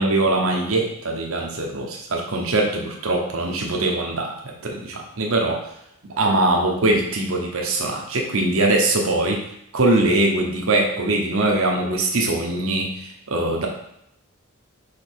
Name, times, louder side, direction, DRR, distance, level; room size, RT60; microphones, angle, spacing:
voice 1, 0.0-5.6 6.2-9.4 9.7-13.7, right 2 dB, 65° right, 0 dB, 0.9 m, -22 dB
5.1 x 4.7 x 4.5 m, 0.75 s
head